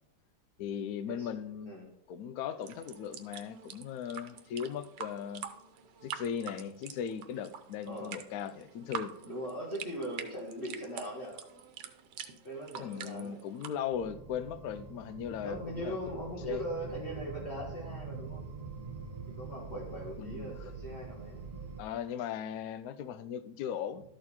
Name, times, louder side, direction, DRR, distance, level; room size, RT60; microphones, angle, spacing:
voice 1, 0.6-1.7 2.1-5.5 6.0-9.1 12.8-16.0 16.4-16.6 20.2-20.5 21.8-24.0, left 8 dB, 70° left, 1.0 m, -38 dB
sound 1, 2.6-13.7, right 7 dB, 90° right, 1.4 m, -46 dB
voice 2, 7.9-8.2 9.2-11.4 12.4-13.4 15.4-18.4 19.3-21.4, equal, 40° left, 1.9 m, -40 dB
sound 2, 13.9-21.8, right 4 dB, 25° right, 1.1 m, -44 dB
12.5 x 4.4 x 4.2 m
omnidirectional pair, 1.8 m